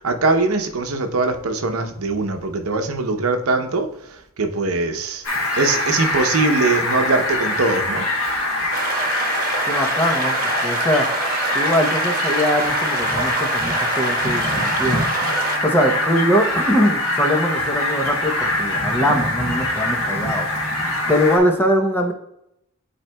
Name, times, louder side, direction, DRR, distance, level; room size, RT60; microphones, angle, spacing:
voice 1, 0.0-3.9 4.4-5.2 5.6-8.0, right 3 dB, 70° right, 5 dB, 0.8 m, -21 dB
Fowl, 5.2-21.4, left 1 dB, 75° left, 2.3 m, -23 dB
sound 1, 8.7-15.6, right 3 dB, 45° right, 1.2 m, -26 dB
voice 2, 9.7-11.1 11.5-15.0 15.6-20.5 21.1-22.1, equal, 10° left, 3 dB, 0.7 m, -21 dB
10.5 x 4.3 x 2.2 m, 0.81 s
head